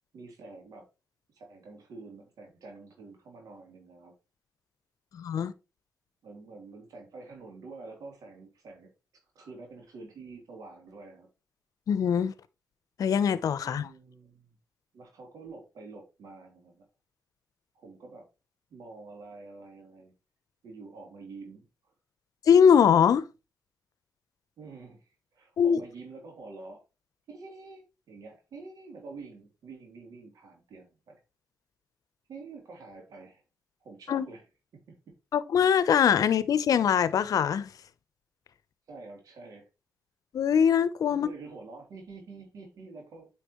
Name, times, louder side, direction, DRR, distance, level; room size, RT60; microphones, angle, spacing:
voice 1, 0.1-0.9 1.3-4.2 6.2-8.9 9.3-11.3 13.6-14.5 14.9-16.8 17.7-18.2 18.7-20.1 20.6-21.6 24.6-26.8 27.3-31.2 32.3-33.4 33.8-34.5 34.7-35.0 38.9-39.7 41.1-43.3, right 3 dB, 85° right, 3.2 m, -47 dB
voice 2, 5.1-5.5 11.9-12.3 13.0-13.9 22.5-23.2 25.6-25.8 34.1-34.3 35.3-37.7 40.3-41.3, left 7 dB, 80° left, 0.7 m, -22 dB
9.2 x 5.9 x 3.1 m
cardioid pair, 75°, 6 cm